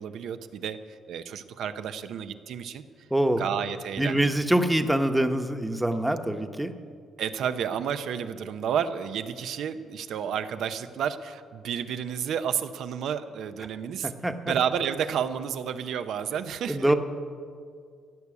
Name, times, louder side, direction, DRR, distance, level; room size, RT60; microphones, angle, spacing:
voice 1, 0.0-3.1 3.4-4.3 7.2-14.1 14.4-16.9, right 8 dB, 75° right, 10 dB, 0.8 m, -31 dB
voice 2, 3.1-3.4 4.0-6.7 14.0-14.5 16.7-16.9, right 1 dB, 10° right, 7 dB, 1.0 m, -24 dB
15.5 x 6.9 x 9.8 m, 2.2 s
cardioid pair, 90°, 0 cm